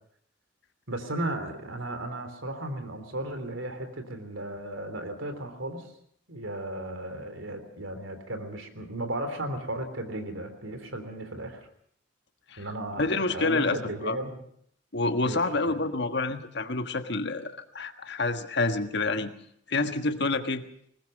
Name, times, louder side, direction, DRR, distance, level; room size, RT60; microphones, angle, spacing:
voice 1, 0.9-5.9 6.3-11.7 12.6-14.4 15.2-15.8, right 1 dB, 80° right, 7 dB, 3.4 m, -35 dB
voice 2, 13.0-14.2 14.9-19.3 19.7-20.6, left 3 dB, 60° left, 8 dB, 1.5 m, -28 dB
21.0 x 19.5 x 6.5 m, 0.66 s
head